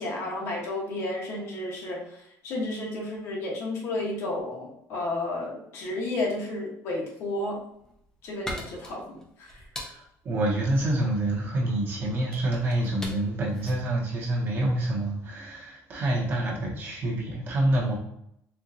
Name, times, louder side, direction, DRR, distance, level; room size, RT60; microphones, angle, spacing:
voice 1, 0.0-2.0 2.4-7.6 8.2-9.6, left 2 dB, 50° left, -2 dB, 1.1 m, -32 dB
sound 1, 7.6-15.0, left 1 dB, 10° left, 0.6 m, -42 dB
voice 2, 9.8-18.0, right 1 dB, 35° right, -3 dB, 1.0 m, -27 dB
4.4 x 2.5 x 2.6 m, 0.75 s
cardioid pair, 155°, 6 cm